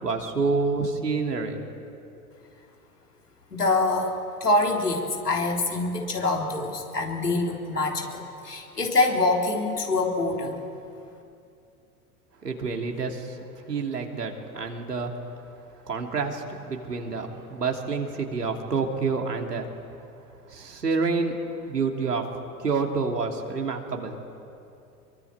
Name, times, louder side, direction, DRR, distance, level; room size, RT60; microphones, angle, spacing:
voice 1, 0.0-1.7 12.4-13.4 13.7-15.1 15.8-19.7 20.5-21.4 21.6-22.2 22.6-24.2, right 4 dB, 80° right, 2 dB, 3.0 m, -28 dB
voice 2, 3.5-10.6, left 2 dB, 80° left, 1 dB, 3.8 m, -25 dB
26.5 x 23.0 x 8.8 m, 2.6 s
figure-of-eight pair, 85°, 47 cm